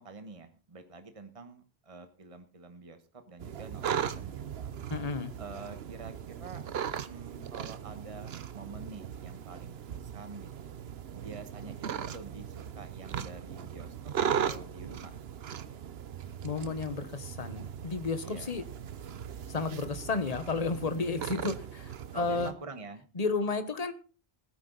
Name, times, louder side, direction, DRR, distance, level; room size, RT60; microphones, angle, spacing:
voice 1, 0.0-4.7 5.4-6.6 7.0-10.7 11.1-15.1 18.2-18.5 22.1-23.1, right 3 dB, 35° right, 8 dB, 1.3 m, -47 dB
sound 1, 3.4-22.5, right 8 dB, 75° right, 1.0 m, -38 dB
voice 2, 4.9-5.3 16.4-18.6 19.5-22.5 23.2-23.9, left 4 dB, 40° left, 10 dB, 1.2 m, -32 dB
16.5 x 9.9 x 4.0 m, 0.36 s
omnidirectional pair, 1.0 m